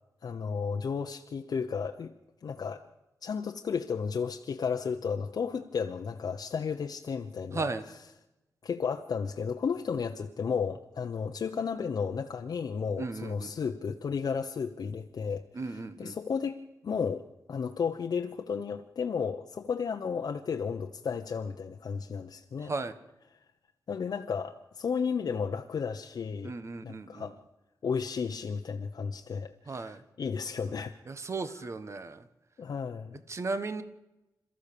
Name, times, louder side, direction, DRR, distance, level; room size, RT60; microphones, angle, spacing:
voice 1, 0.2-2.1 2.4-2.8 3.2-8.1 8.6-16.6 16.8-22.7 23.9-26.6 26.8-27.4 27.8-31.0 31.4-31.7 32.6-33.2, left 6 dB, 70° left, 4 dB, 0.9 m, -33 dB
voice 2, 13.0-13.5 15.5-16.1 22.7-22.9 26.4-27.3 29.7-30.0 31.1-32.2 33.3-33.8, right 3 dB, 40° right, 12 dB, 1.3 m, -35 dB
28.0 x 14.0 x 6.9 m, 0.99 s
wide cardioid pair, 130°, 7 cm